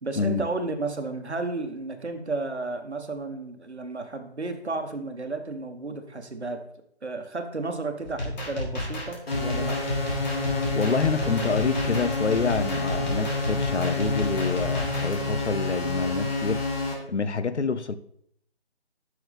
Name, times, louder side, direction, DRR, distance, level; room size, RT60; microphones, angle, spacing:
voice 1, 0.0-6.6 7.0-9.8, right 3 dB, 75° right, 1.3 m, -32 dB
sound 1, 8.0-15.2, left 1 dB, 40° left, 2.5 m, -32 dB
sound 2, 9.3-16.9, left 2 dB, 60° left, 2.7 m, -28 dB
voice 2, 10.8-18.0, left 4 dB, 80° left, 0.7 m, -27 dB
9.3 x 6.2 x 3.5 m
figure-of-eight pair, 155°, 33 cm